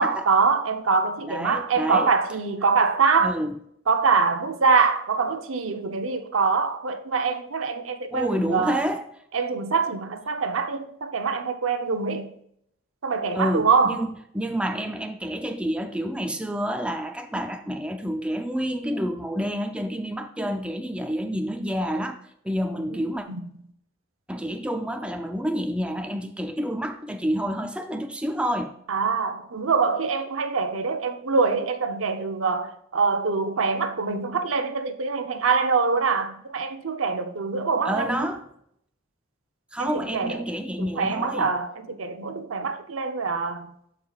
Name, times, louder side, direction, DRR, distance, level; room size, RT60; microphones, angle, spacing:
voice 1, 0.0-3.4 3.9-8.8 9.3-12.3 13.0-14.1 22.9-23.0 23.3-23.4 28.9-38.3 39.8-40.4 40.8-43.7, right 4 dB, 85° right, 0.8 m, -24 dB
voice 2, 1.3-2.1 3.2-3.5 8.1-9.0 13.3-22.2 22.4-23.3 24.3-28.7 37.8-38.4 39.7-41.5 42.6-42.7, equal, 5° right, 0.5 m, -28 dB
12.0 x 4.8 x 2.4 m
head